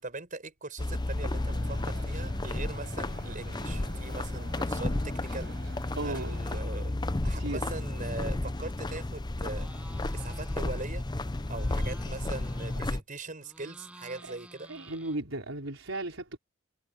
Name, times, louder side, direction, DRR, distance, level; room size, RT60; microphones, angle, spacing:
voice 1, 0.0-5.7 6.0-7.0 7.2-9.7 10.1-11.1 11.5-14.7, right 3 dB, 45° right, 5.6 m, -41 dB
sound 1, 0.8-13.0, left 2 dB, 20° left, 0.6 m, -32 dB
sound 2, 1.3-6.6, right 2 dB, 60° right, 6.4 m, -48 dB
voice 2, 6.0-6.3 7.3-7.7 14.1-16.4, right 2 dB, 90° right, 4.5 m, -36 dB
sound 3, 9.5-10.9 11.2-13.0 13.4-15.6, right 1 dB, 5° right, 7.6 m, -52 dB
head